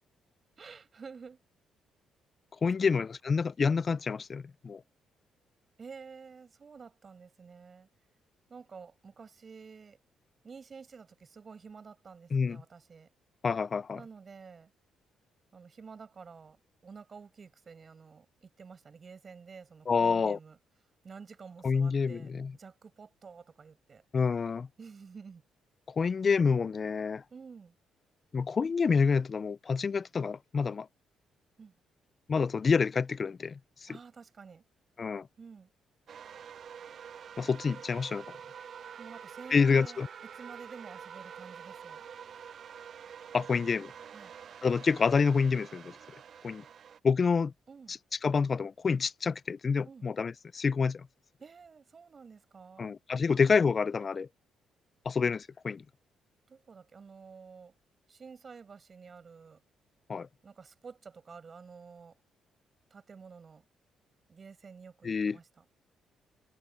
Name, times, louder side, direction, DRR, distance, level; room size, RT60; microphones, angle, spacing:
voice 1, 0.6-1.4 2.9-3.0 5.8-7.9 8.5-10.0 10.4-13.1 13.9-14.7 15.5-16.6 16.8-20.6 21.0-24.0 24.8-25.4 27.3-27.7 31.6-31.7 33.9-34.6 35.4-35.7 39.0-40.0 40.3-42.0 44.1-44.3 47.7-47.9 49.8-50.1 51.4-52.9 56.5-57.7 58.1-59.6 60.4-62.2 62.9-63.6 64.3-65.6, right 5 dB, 40° right, 8.0 m, -50 dB
voice 2, 2.6-4.8 12.3-12.6 13.4-14.0 19.9-20.4 21.6-22.5 24.1-24.7 25.9-27.2 28.3-30.9 32.3-33.9 35.0-35.3 37.4-38.2 39.5-40.1 43.3-43.9 44.6-46.0 46.4-46.6 47.0-47.5 47.9-48.0 48.2-51.1 52.8-54.3 55.1-55.8 60.1-60.3 65.0-65.4, left 5 dB, 40° left, 0.4 m, -28 dB
sound 1, 36.1-47.0, right 8 dB, 55° right, 0.5 m, -47 dB
cardioid pair, 90°, 0 cm